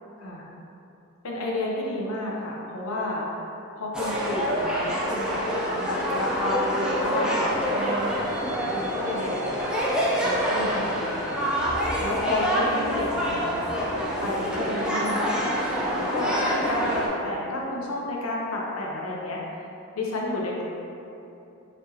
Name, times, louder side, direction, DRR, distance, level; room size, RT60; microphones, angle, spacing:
voice 1, 1.2-3.3 3.7-9.3 10.2-11.4 12.0-13.6 14.2-15.6 16.0-19.7 20.0-20.6, left 2 dB, 80° left, -3 dB, 0.7 m, -31 dB
sound 1, 3.9-17.1, equal, 5° right, 0.4 m, -26 dB
sound 2, 8.2-13.6, left 2 dB, 20° right, 1.4 m, -45 dB
4.2 x 3.1 x 2.8 m, 2.8 s
head